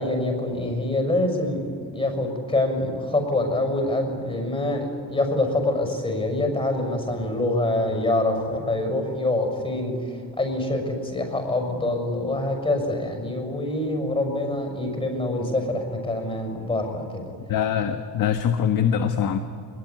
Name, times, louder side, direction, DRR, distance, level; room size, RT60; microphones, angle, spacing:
voice 1, 0.0-1.6 1.8-17.2, left 2 dB, 15° left, 4 dB, 6.5 m, -25 dB
voice 2, 17.5-19.4, left 8 dB, 70° left, 7 dB, 1.4 m, -23 dB
24.0 x 22.0 x 9.8 m, 2.1 s
cardioid pair, 140°, 34 cm